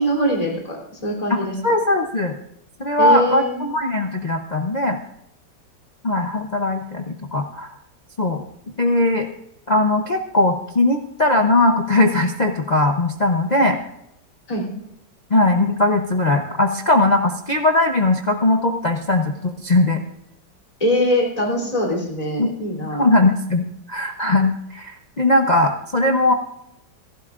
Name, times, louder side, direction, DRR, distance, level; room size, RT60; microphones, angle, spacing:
voice 1, 0.0-1.5 3.0-3.6 14.5-14.6 20.8-23.1, equal, 20° left, 0 dB, 3.4 m, -22 dB
voice 2, 1.3-2.3 2.8-5.0 6.0-7.7 8.2-8.4 8.8-9.3 9.7-13.8 15.3-20.0 22.4-22.5 23.0-26.3, left 2 dB, 90° left, 2 dB, 0.3 m, -19 dB
27.5 x 11.5 x 2.5 m, 0.79 s
omnidirectional pair, 2.1 m